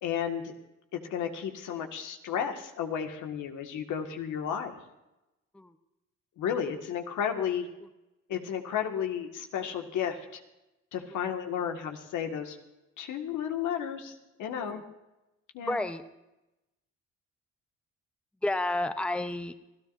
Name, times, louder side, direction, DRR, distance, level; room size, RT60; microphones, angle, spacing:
voice 1, 0.0-0.5 0.9-4.8 6.4-7.7 8.3-10.4 10.9-12.6 13.0-14.1 14.4-14.8 15.5-15.8, left 8 dB, 80° left, 4 dB, 1.8 m, -33 dB
voice 2, 15.6-16.0 18.4-19.5, left 2 dB, 5° left, 9 dB, 0.8 m, -31 dB
27.5 x 13.5 x 2.6 m, 0.95 s
cardioid pair, 90°, 30 cm